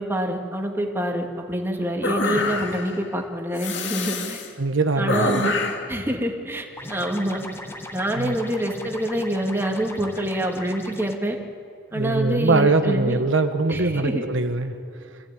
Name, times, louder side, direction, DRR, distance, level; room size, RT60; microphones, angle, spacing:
voice 1, 0.0-4.4 5.0-5.5 5.9-7.4 7.9-11.4 11.9-13.2 13.7-14.2, right 1 dB, 10° right, 2 dB, 2.2 m, -26 dB
sound 1, 2.0-3.0 3.6-4.5 5.1-5.9, left 3 dB, 65° left, 2.2 m, -26 dB
voice 2, 4.6-5.4 8.1-8.3 11.9-14.8, right 3 dB, 80° right, 7 dB, 1.3 m, -22 dB
sound 2, 6.8-11.1, left 1 dB, 15° left, 1.5 m, -38 dB
25.5 x 15.5 x 9.2 m, 2.4 s
head